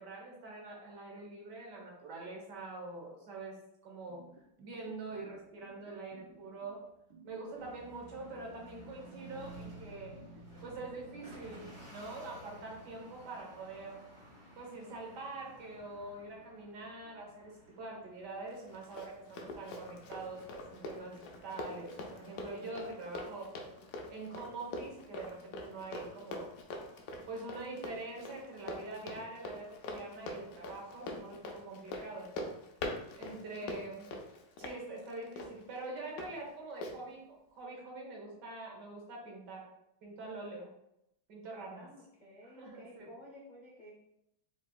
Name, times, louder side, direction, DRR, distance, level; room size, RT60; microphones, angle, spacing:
voice 1, 0.0-4.2 4.6-6.8 7.2-10.2 10.6-14.0 14.6-23.5 24.1-26.6 27.3-32.3 33.2-34.1 34.6-39.7 40.0-40.7 41.3-41.9 42.4-43.1, right 2 dB, 65° right, -1 dB, 1.6 m, -45 dB
sound 1, 4.1-11.7, right 4 dB, 85° right, 1.4 m, -58 dB
sound 2, 7.5-26.2, right 1 dB, 25° right, 0.7 m, -55 dB
Run, 18.5-36.3 36.8-37.0, left 2 dB, 70° left, 0.8 m, -44 dB
voice 2, 41.7-43.9, equal, 90° left, -5 dB, 0.4 m, -53 dB
4.5 x 4.0 x 2.3 m, 0.79 s
omnidirectional pair, 2.1 m